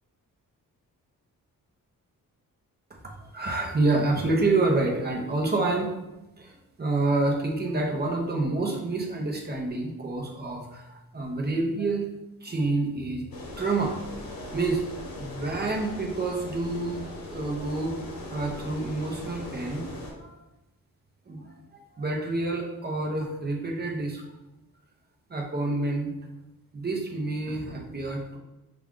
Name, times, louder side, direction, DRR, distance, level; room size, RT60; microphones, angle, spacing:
voice 1, 3.2-5.9 6.4-12.1 12.4-13.2 13.6-14.8 15.2-17.9 18.3-20.4 21.3-24.2 25.3-26.1 26.7-28.4, right 2 dB, 30° right, -1 dB, 0.7 m, -28 dB
sound 1, 13.3-20.1, left 1 dB, 75° left, 1.0 m, -40 dB
5.8 x 2.4 x 3.7 m, 0.97 s
wide cardioid pair, 135°, 35 cm